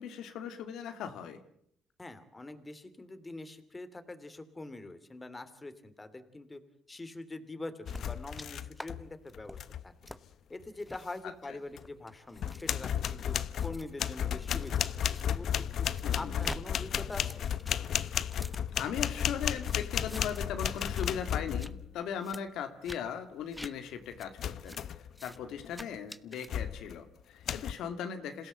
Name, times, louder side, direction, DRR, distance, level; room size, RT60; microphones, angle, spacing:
voice 1, 0.0-1.4 16.0-16.4 18.8-24.8 25.2-28.5, left 8 dB, 85° left, 7 dB, 2.2 m, -38 dB
voice 2, 2.0-6.6 6.9-9.6 9.8-9.9 10.5-15.9 16.1-17.5, left 2 dB, 20° left, 10 dB, 2.9 m, -44 dB
sound 1, 7.9-9.1 9.3-9.8 11.8-11.9 12.4-21.9 24.4-25.1 25.6-25.9 26.5-27.0 27.5-27.7, left 9 dB, 65° left, 0.9 m, -33 dB
sound 2, 7.9-8.5 8.8-8.9 9.3-9.6 10.1-10.2 10.8-11.0 11.7-15.2 15.6-16.6 16.9-19.2 19.6-20.5 20.8-21.1 21.4-21.7 22.2-22.4 22.8-23.0 23.5-23.7 24.2-24.3 24.7-24.8 25.1-25.4 25.7-26.5, left 1 dB, 5° left, 1.1 m, -47 dB
27.0 x 17.0 x 7.9 m, 0.70 s
cardioid pair, 90°, 0 cm